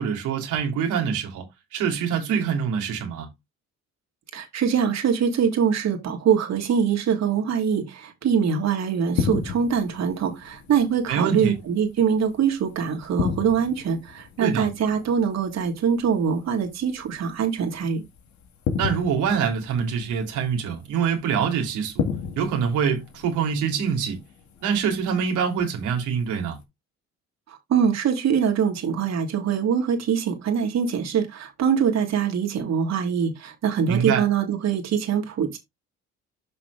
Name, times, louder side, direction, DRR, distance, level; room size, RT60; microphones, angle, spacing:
voice 1, 0.0-1.4 1.7-3.3 11.1-11.5 14.4-14.7 18.8-22.1 22.4-24.2 24.6-26.6 33.9-34.2, right 7 dB, 85° right, 3.5 m, -25 dB
voice 2, 4.3-18.0 27.5-35.6, right 7 dB, 60° right, 3.2 m, -23 dB
sound 1, 9.1-26.6, left 6 dB, 70° left, 2.2 m, -35 dB
7.4 x 6.0 x 3.5 m
cardioid pair, 80°, 29 cm